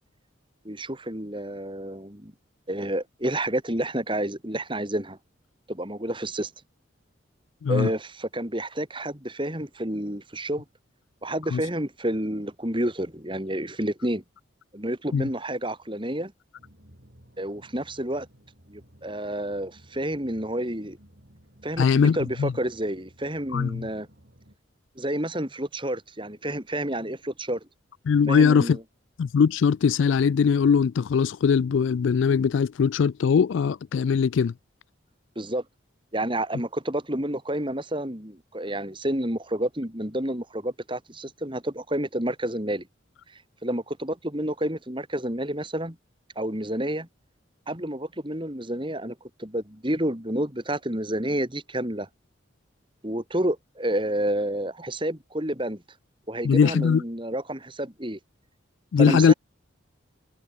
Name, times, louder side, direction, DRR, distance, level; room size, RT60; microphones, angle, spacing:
voice 1, 0.7-2.3 2.7-5.2 5.7-6.5 7.7-10.6 11.2-14.2 14.7-16.3 17.4-18.3 18.7-21.0 21.6-24.1 25.0-27.6 28.3-28.8 35.4-35.6 36.1-42.9 43.6-46.0 46.4-47.1 47.7-52.1 53.0-55.8 56.3-58.2 59.0-59.3, right 1 dB, 25° right, 3.5 m, -29 dB
sound 1, 16.6-24.6, equal, 55° right, 8.0 m, -56 dB
voice 2, 21.8-22.5 23.5-23.9 28.1-28.8 29.2-34.5 56.4-57.0 58.9-59.3, left 6 dB, 70° left, 0.3 m, -21 dB
head